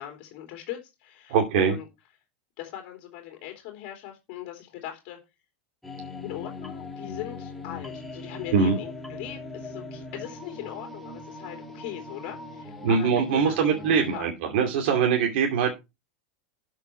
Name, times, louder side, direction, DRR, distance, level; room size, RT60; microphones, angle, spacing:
voice 1, 0.0-1.8 2.6-5.2 6.2-13.6 14.1-14.3, left 12 dB, 40° left, 3 dB, 3.3 m, -39 dB
voice 2, 1.3-1.7 8.5-8.8 12.8-15.7, right 6 dB, 55° right, 2 dB, 2.6 m, -22 dB
sound 1, 5.8-14.2, left 3 dB, ahead, 2.0 m, -40 dB
12.5 x 6.5 x 4.5 m, 0.25 s
supercardioid pair, 170°, 7 cm